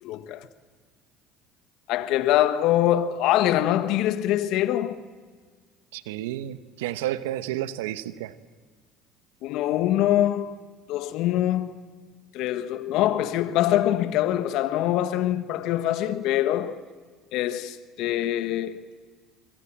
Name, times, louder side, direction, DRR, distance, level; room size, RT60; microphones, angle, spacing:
voice 1, 0.0-0.5 1.9-5.0 9.4-10.6 10.9-11.8 12.3-16.8 17.3-18.8, left 12 dB, 65° left, 1.4 m, -24 dB
voice 2, 5.9-8.3, right 13 dB, 80° right, 1.1 m, -31 dB
25.5 x 24.0 x 7.5 m
hypercardioid pair, 70°, 0 cm